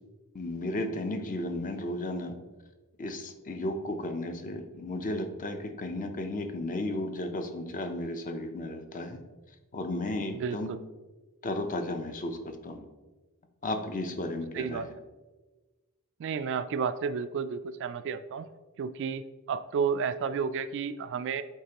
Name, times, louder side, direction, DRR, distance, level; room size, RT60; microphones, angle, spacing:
voice 1, 0.3-2.4 3.0-9.2 9.7-10.7 11.4-12.9 13.6-14.9, left 1 dB, 35° left, 7 dB, 0.6 m, -34 dB
voice 2, 10.3-10.8 14.5-14.9 16.2-18.5 18.8-21.4, right 6 dB, 55° right, 12 dB, 0.3 m, -32 dB
8.1 x 4.4 x 2.9 m, 1.2 s
head